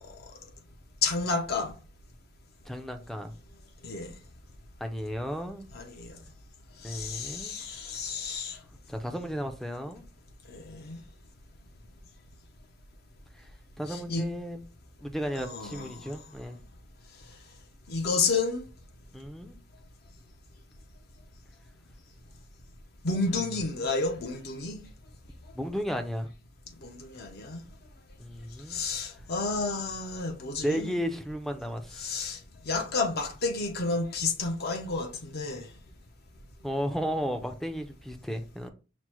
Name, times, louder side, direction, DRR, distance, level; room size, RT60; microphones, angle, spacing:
voice 1, 1.0-1.7 3.8-4.1 5.7-6.2 6.8-8.6 10.5-11.0 13.9-14.3 15.4-16.0 17.9-18.6 23.0-24.8 26.8-27.6 28.7-30.9 32.0-32.4 32.7-35.6, left 3 dB, 55° left, 0.6 m, -31 dB
voice 2, 2.7-3.3 4.8-5.7 6.8-7.6 8.9-10.0 13.8-14.6 15.0-16.6 19.1-19.6 23.3-23.5 25.5-26.3 28.2-28.8 30.6-32.3 36.6-38.7, equal, ahead, 0.4 m, -34 dB
6.0 x 2.1 x 2.9 m
head